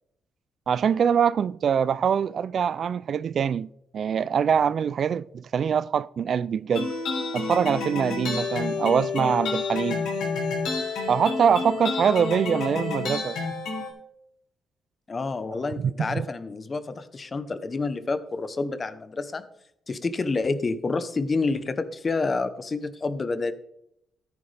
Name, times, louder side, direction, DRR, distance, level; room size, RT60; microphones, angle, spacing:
voice 1, 0.7-3.7 3.9-6.9 7.3-10.1 11.1-13.4 15.8-16.2, right 7 dB, 50° right, 0.3 m, -24 dB
sound 1, 6.7-13.9, left 4 dB, 80° left, 3.3 m, -29 dB
voice 2, 15.1-19.4 19.9-23.5, left 3 dB, 30° left, 0.9 m, -28 dB
13.5 x 9.5 x 3.4 m
cardioid pair, 125°, 0 cm